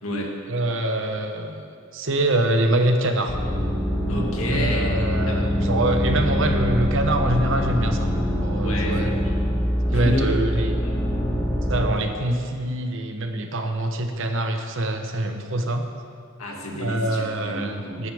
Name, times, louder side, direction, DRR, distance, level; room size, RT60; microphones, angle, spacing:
voice 1, 0.5-1.7 1.9-3.4 4.5-9.2 9.9-10.7 11.7-15.9 16.8-18.1, right 1 dB, 60° right, 5 dB, 1.1 m, -25 dB
sound 1, 3.3-11.9, equal, 30° left, 2.4 m, -24 dB
voice 2, 4.1-5.4 8.5-9.3 9.9-10.9 16.4-18.1, equal, 80° left, -1 dB, 2.2 m, -30 dB
19.0 x 9.6 x 3.6 m, 2.2 s
head